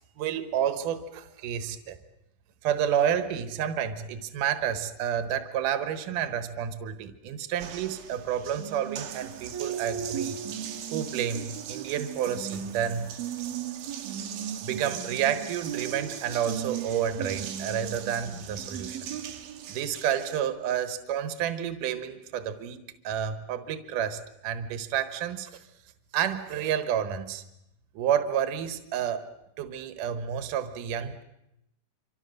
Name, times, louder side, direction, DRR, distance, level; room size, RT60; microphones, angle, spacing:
voice 1, 0.2-2.0 2.6-10.4 10.9-13.2 14.6-19.1 19.7-25.6 26.1-27.4 27.9-29.3 29.6-31.2, right 9 dB, 65° right, 9 dB, 2.8 m, -30 dB
Water tap faucet, 7.6-20.4, right 9 dB, 85° right, 3.4 m, -37 dB
27.0 x 25.5 x 6.6 m, 0.86 s
omnidirectional pair, 4.3 m